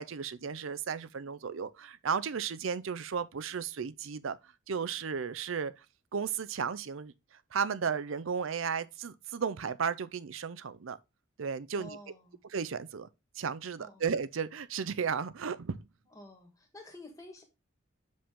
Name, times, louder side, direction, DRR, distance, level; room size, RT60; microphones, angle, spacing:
voice 1, 0.0-5.8 6.1-11.0 11.4-12.0 12.5-13.1 13.4-15.8, right 6 dB, 75° right, 0.5 m, -34 dB
voice 2, 11.8-12.4 13.8-14.0 16.1-17.4, left 1 dB, 15° left, 1.7 m, -50 dB
6.9 x 5.2 x 3.6 m
head